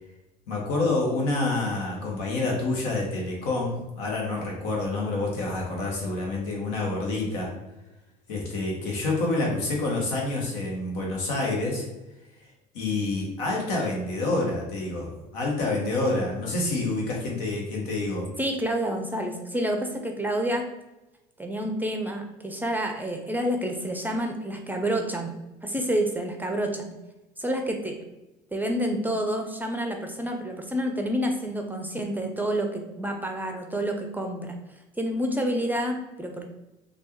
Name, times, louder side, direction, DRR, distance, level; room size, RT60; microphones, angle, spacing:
voice 1, 0.5-7.5 8.3-11.8 12.7-18.3, left 2 dB, 80° left, -1 dB, 1.1 m, -28 dB
voice 2, 18.4-20.6 21.4-25.3 25.6-26.9 27.4-28.0 28.5-34.6 35.0-36.5, right 1 dB, 10° right, 3 dB, 0.5 m, -28 dB
3.3 x 2.4 x 3.0 m, 1.0 s
supercardioid pair, 75°, 20 cm